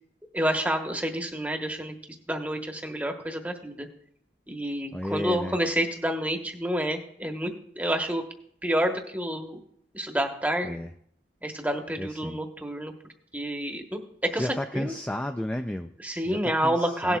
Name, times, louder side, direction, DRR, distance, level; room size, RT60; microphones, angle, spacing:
voice 1, 0.3-1.9 2.3-3.9 4.5-8.2 8.6-9.6 9.9-10.8 11.4-12.9 13.3-14.9 16.0-17.2, equal, 10° right, 4 dB, 1.1 m, -29 dB
voice 2, 4.9-5.6 10.6-10.9 12.0-12.4 14.3-17.2, left 1 dB, 5° left, 6 dB, 0.3 m, -33 dB
17.0 x 11.5 x 2.3 m, 0.66 s
head